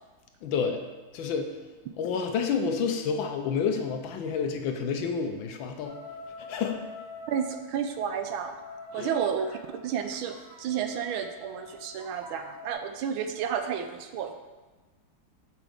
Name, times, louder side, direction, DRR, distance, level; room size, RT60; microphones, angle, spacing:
voice 1, 0.4-0.8 1.1-1.5 2.0-6.0 6.5-6.8 8.9-9.2, left 6 dB, 70° left, 5 dB, 1.3 m, -29 dB
sound 1, 5.8-7.6 8.3-12.7, left 3 dB, 60° right, 1.8 m, -45 dB
voice 2, 7.3-8.5 8.9-14.3, right 8 dB, 75° right, 7 dB, 1.3 m, -31 dB
7.2 x 6.2 x 3.5 m, 1.3 s
omnidirectional pair, 2.4 m